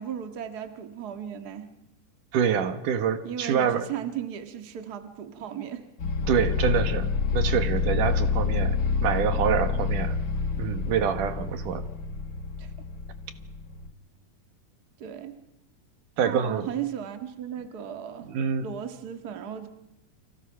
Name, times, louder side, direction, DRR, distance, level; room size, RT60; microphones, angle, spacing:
voice 1, 0.0-1.7 3.2-5.9 12.6-12.7 15.0-15.3 16.2-18.3 18.6-19.7, right 9 dB, 35° right, 8 dB, 1.8 m, -36 dB
voice 2, 2.3-3.8 6.3-10.2 10.6-11.8 16.2-16.7 18.3-18.7, right 8 dB, 80° right, 10 dB, 3.0 m, -26 dB
sound 1, 6.0-13.9, left 5 dB, 45° left, 1.5 m, -28 dB
30.0 x 25.5 x 5.7 m, 0.85 s
omnidirectional pair, 3.6 m